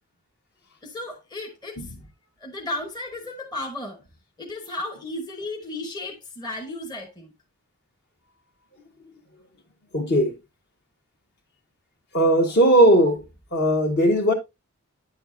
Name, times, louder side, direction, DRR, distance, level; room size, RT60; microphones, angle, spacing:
voice 1, 0.8-1.9 2.4-4.0 4.4-7.3, left 2 dB, 20° left, 1.0 m, -34 dB
voice 2, 9.9-10.3 12.1-13.2 13.5-14.3, right 1 dB, 50° left, 1.7 m, -18 dB
9.6 x 6.9 x 2.6 m
head